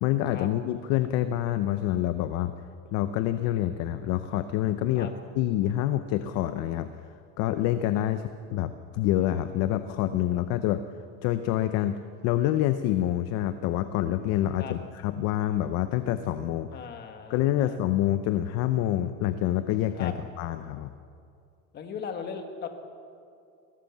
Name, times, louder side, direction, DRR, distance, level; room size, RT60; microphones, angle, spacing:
voice 1, 0.0-2.5 2.9-6.9 7.4-10.8 11.2-12.0 12.2-16.7 17.3-20.9, left 13 dB, 40° left, 11 dB, 0.7 m, -27 dB
voice 2, 16.7-17.8 20.0-20.1 21.7-22.7, left 6 dB, 25° left, 6 dB, 1.8 m, -38 dB
22.5 x 17.5 x 7.3 m, 2.4 s
supercardioid pair, 165°, 40 cm